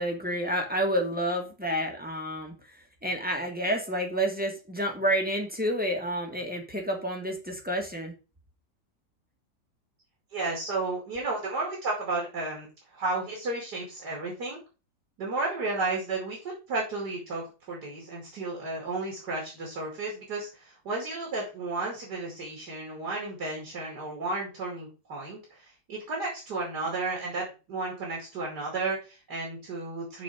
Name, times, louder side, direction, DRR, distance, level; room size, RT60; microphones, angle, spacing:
voice 1, 0.0-2.5 3.0-8.1, equal, 5° right, 1 dB, 1.5 m, -29 dB
voice 2, 10.3-14.6 15.2-30.2, right 3 dB, 65° right, -2 dB, 3.0 m, -33 dB
7.2 x 4.2 x 5.9 m, 0.32 s
omnidirectional pair, 1.9 m